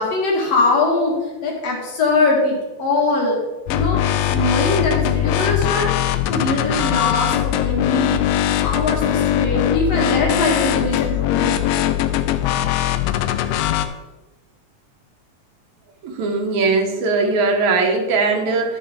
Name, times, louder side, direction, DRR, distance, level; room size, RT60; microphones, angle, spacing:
voice 1, 0.0-3.4 3.7-4.0 4.3-5.9 6.3-8.2 8.6-11.9, left 3 dB, 60° left, -2 dB, 2.8 m, -21 dB
sound 1, 3.7-13.9, left 12 dB, 85° left, 2.0 m, -20 dB
voice 2, 16.0-18.8, right 3 dB, 75° right, 3 dB, 2.4 m, -19 dB
12.0 x 6.7 x 3.5 m, 1.1 s
omnidirectional pair, 3.4 m